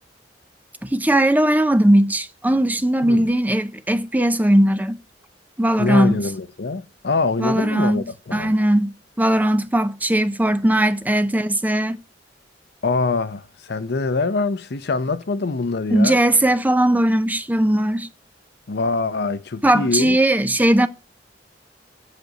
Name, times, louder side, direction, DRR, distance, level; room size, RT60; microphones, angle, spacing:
voice 1, 0.8-5.0 5.6-6.2 7.4-8.0 8.3-12.0 15.9-18.1 19.6-20.9, right 1 dB, 10° right, 0.5 m, -18 dB
voice 2, 5.8-8.5 12.8-16.2 18.7-20.2, left 3 dB, 65° left, 0.7 m, -24 dB
7.7 x 5.1 x 6.6 m
head